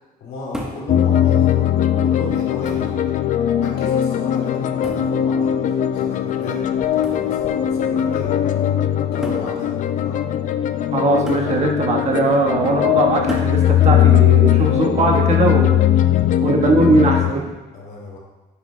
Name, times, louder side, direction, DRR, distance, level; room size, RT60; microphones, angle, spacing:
voice 1, 0.2-1.7 2.0-3.1 3.6-8.6 9.0-10.3 17.7-18.2, left 2 dB, 75° left, -3 dB, 2.3 m, -34 dB
sound 1, 0.5-0.9 1.9-2.0 2.7-3.0 4.8-5.2 7.0-7.3 8.4-8.5 9.2-9.5 11.3-11.6 13.3-13.6 15.1-15.5, equal, 5° right, 1.1 m, -33 dB
sound 2, 0.9-17.3, left 11 dB, 50° left, 0.4 m, -19 dB
voice 2, 10.9-15.8 16.4-17.4, right 3 dB, 40° right, 0 dB, 1.3 m, -19 dB
9.4 x 6.0 x 2.2 m, 1.1 s
cardioid pair, 110°, 17 cm